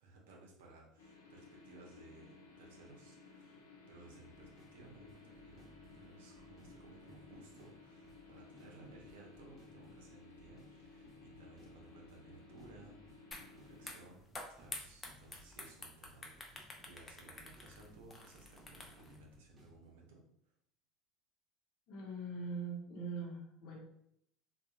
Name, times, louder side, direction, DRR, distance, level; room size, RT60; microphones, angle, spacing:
voice 1, 0.0-5.6 5.9-20.2, right 3 dB, 75° right, -1 dB, 0.7 m, -59 dB
sound 1, 1.0-13.9, left 4 dB, 85° left, 0.5 m, -58 dB
sound 2, 4.1-20.0, left 1 dB, 25° right, 1.0 m, -63 dB
sound 3, 13.3-13.5 13.8-19.2, left 2 dB, 25° left, 0.5 m, -49 dB
voice 2, 21.9-23.8, right 3 dB, 60° left, -1 dB, 0.8 m, -42 dB
2.8 x 2.3 x 2.4 m, 0.75 s
hypercardioid pair, 75°, 0 cm